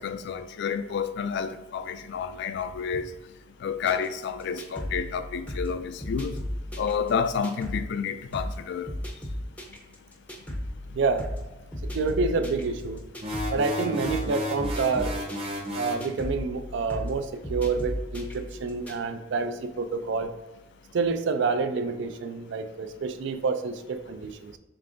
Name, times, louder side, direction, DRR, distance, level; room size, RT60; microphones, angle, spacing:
voice 1, 0.0-3.1 3.6-6.4 6.8-8.9, left 6 dB, 60° left, 0.3 m, -30 dB
sound 1, 3.9-7.9 8.3-8.6 8.9-13.6 14.0-14.3 14.6-18.9, left 1 dB, 5° left, 0.6 m, -35 dB
voice 2, 10.9-11.3 11.9-13.0 13.5-15.1 15.7-20.3 20.9-24.6, right 4 dB, 65° right, 0.4 m, -28 dB
sound 2, 13.2-16.1, equal, 30° right, 0.8 m, -32 dB
5.1 x 3.3 x 2.6 m
head